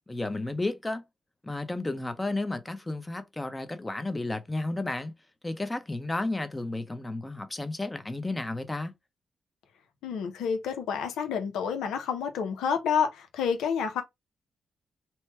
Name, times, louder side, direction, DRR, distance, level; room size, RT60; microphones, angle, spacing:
voice 1, 0.1-1.0 1.4-5.1 5.4-8.9, left 2 dB, 20° left, 0.8 m, -32 dB
voice 2, 10.0-14.0, left 7 dB, 90° left, 0.6 m, -29 dB
3.0 x 2.2 x 3.1 m
supercardioid pair, 55°, 0 cm